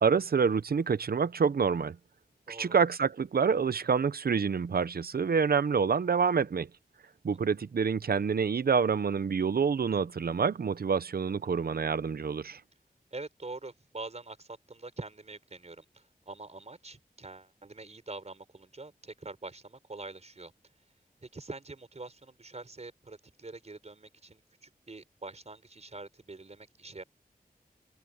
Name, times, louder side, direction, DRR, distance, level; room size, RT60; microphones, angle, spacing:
voice 1, 0.0-2.0 2.5-6.7 7.2-12.6, right 6 dB, 80° right, 0.8 m, -27 dB
voice 2, 13.1-20.5 21.2-27.0, right 3 dB, 45° right, 4.7 m, -45 dB
wide cardioid pair, 85°, 16 cm